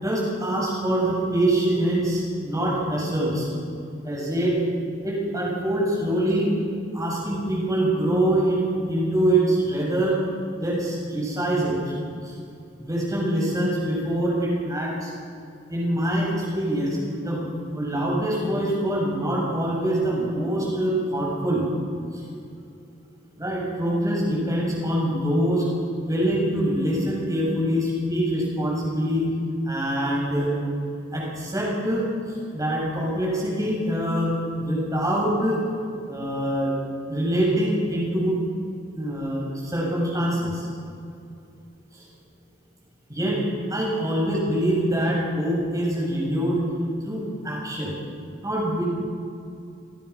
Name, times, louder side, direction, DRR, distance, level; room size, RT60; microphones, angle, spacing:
voice 1, 0.0-3.5 4.0-4.6 5.0-6.5 6.9-10.2 10.5-11.9 12.2-12.3 12.8-15.1 15.7-17.0 17.2-21.6 22.1-22.2 23.4-25.7 26.0-29.3 29.7-30.5 31.1-35.6 36.1-36.8 37.1-38.4 38.9-40.7 41.9-42.0 43.1-43.4 43.7-46.6 47.0-47.9 48.4-48.8, right 1 dB, 20° right, -3 dB, 7.4 m, -24 dB
28.0 x 18.5 x 6.0 m, 2.5 s
head